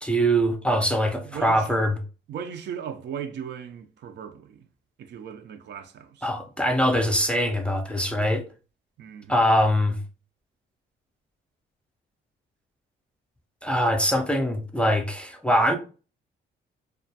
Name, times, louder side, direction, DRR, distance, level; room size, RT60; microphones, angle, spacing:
voice 1, 0.0-2.0 6.2-8.4 9.3-10.0 13.6-15.8, equal, 5° left, 0.4 m, -23 dB
voice 2, 1.2-1.8 2.3-4.7 5.0-6.3 9.0-9.4, right 8 dB, 60° right, 0.4 m, -37 dB
2.3 x 2.1 x 2.7 m
cardioid pair, 90°, 20 cm